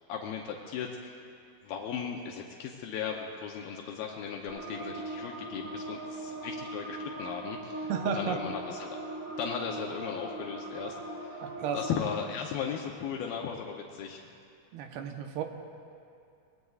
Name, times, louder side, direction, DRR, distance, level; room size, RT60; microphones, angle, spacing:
voice 1, 0.1-1.2 1.6-8.9 9.4-14.3, left 7 dB, 80° left, 0 dB, 2.5 m, -37 dB
sound 1, 4.5-11.9, right 1 dB, 50° right, 4.2 m, -40 dB
voice 2, 7.9-8.4 11.4-11.8 14.7-15.4, right 7 dB, 85° right, 4 dB, 2.9 m, -33 dB
24.5 x 20.0 x 2.4 m, 2.5 s
omnidirectional pair, 4.4 m